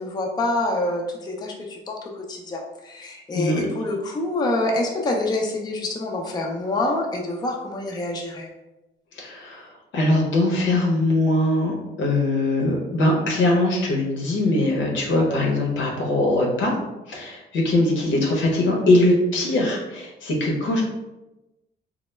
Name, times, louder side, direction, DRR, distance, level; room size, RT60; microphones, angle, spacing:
voice 1, 0.0-8.5, left 2 dB, 20° left, 0 dB, 0.4 m, -26 dB
voice 2, 3.3-3.7 9.1-16.7 17.1-20.8, left 2 dB, 75° left, 0 dB, 0.7 m, -21 dB
2.2 x 2.0 x 3.1 m, 0.99 s
cardioid pair, 90°, 20 cm